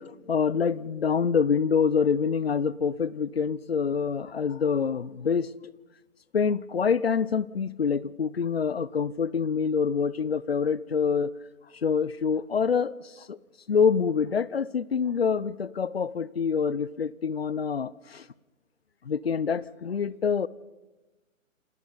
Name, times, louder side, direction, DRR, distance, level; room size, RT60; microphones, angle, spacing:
voice 1, 0.0-5.5 6.3-11.3 11.8-13.4 13.7-18.3 19.0-20.5, left 6 dB, 50° left, 21 dB, 0.6 m, -26 dB
28.0 x 25.0 x 4.0 m, 1.1 s
hypercardioid pair, 170°, 41 cm